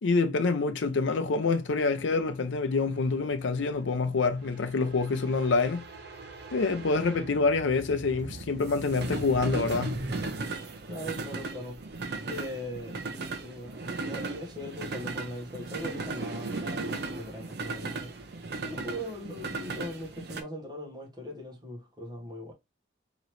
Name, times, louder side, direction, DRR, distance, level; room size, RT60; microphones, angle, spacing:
voice 1, 0.0-5.8 6.5-10.0, left 4 dB, 80° left, 0.5 m, -26 dB
sound 1, 0.9-20.4, right 3 dB, 55° right, 0.6 m, -38 dB
voice 2, 10.9-11.8 12.3-13.0 13.3-22.5, left 1 dB, 20° right, 1.4 m, -40 dB
3.9 x 3.0 x 3.0 m
head